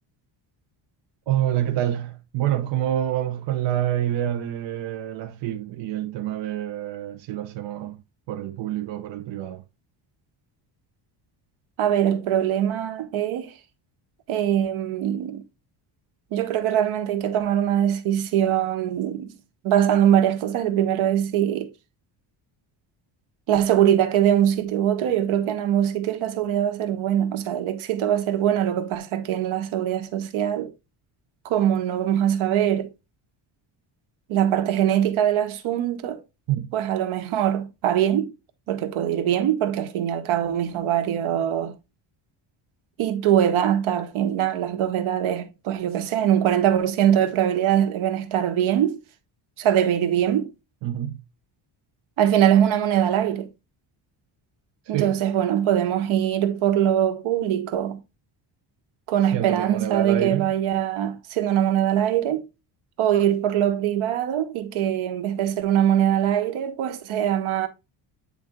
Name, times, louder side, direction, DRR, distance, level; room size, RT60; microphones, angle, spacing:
voice 1, 1.3-8.0 8.3-9.6 36.5-36.7 50.8-51.2 54.9-55.2 59.3-60.5, right 11 dB, 65° right, 0.9 m, -27 dB
voice 2, 11.8-13.5 14.3-15.4 16.3-19.3 19.6-21.7 23.5-30.7 31.4-32.9 34.3-36.2 36.7-38.3 38.7-41.8 43.0-49.0 49.6-50.5 52.2-53.5 54.9-58.0 59.1-62.4 63.0-67.7, right 10 dB, 80° right, 1.5 m, -22 dB
9.3 x 3.5 x 3.7 m
cardioid pair, 155°, 48 cm